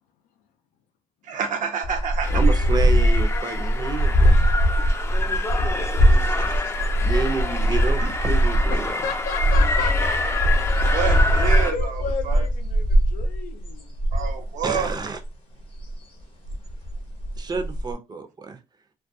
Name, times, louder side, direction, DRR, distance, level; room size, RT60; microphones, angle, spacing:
voice 1, 1.3-2.4 4.8-4.9 10.9-12.4 14.1-15.0, right 6 dB, 70° right, 0.7 m, -28 dB
sound 1, 1.8-15.2 15.8-15.9 16.2-17.9, equal, 45° left, 0.8 m, -21 dB
sound 2, 2.2-11.7, left 3 dB, 20° left, 0.4 m, -28 dB
voice 2, 2.3-4.4 6.9-9.0 14.6-15.2 17.4-18.6, right 4 dB, 30° right, 0.5 m, -29 dB
voice 3, 3.6-3.9 4.6-5.7 8.7-10.2 11.0-11.2 11.7-13.9, left 7 dB, 85° left, 0.4 m, -34 dB
2.3 x 2.2 x 2.6 m
cardioid pair, 85°, 14 cm